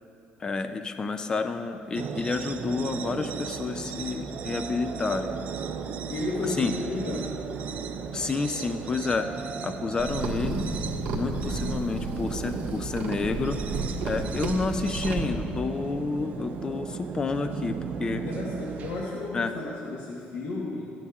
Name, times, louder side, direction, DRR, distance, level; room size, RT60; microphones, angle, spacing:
voice 1, 0.4-5.3 6.6-6.7 8.1-9.3 9.6-10.7 11.1-13.6 14.0-18.2 19.3-19.5, left 4 dB, 25° left, 8 dB, 0.4 m, -29 dB
sound 1, 1.9-19.0, right 6 dB, 50° right, 0.5 m, -36 dB
voice 2, 6.1-7.4 18.1-20.9, left 2 dB, 85° left, -4 dB, 1.2 m, -33 dB
sound 2, 10.0-15.3, right 3 dB, 70° right, 1.5 m, -32 dB
13.5 x 10.5 x 2.4 m, 2.6 s
cardioid pair, 145°, 3 cm